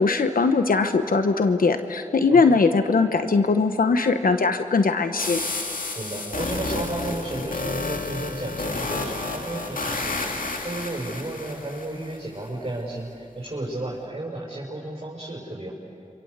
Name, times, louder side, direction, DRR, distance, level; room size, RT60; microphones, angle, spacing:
voice 1, 0.0-5.4, left 4 dB, 90° left, 8 dB, 1.0 m, -20 dB
voice 2, 2.3-2.6 6.0-15.7, right 1 dB, 40° right, -4 dB, 5.8 m, -33 dB
sound 1, 5.2-12.2, left 3 dB, 75° left, 2.4 m, -31 dB
28.5 x 26.0 x 8.1 m, 2.6 s
cardioid pair, 40°, 14 cm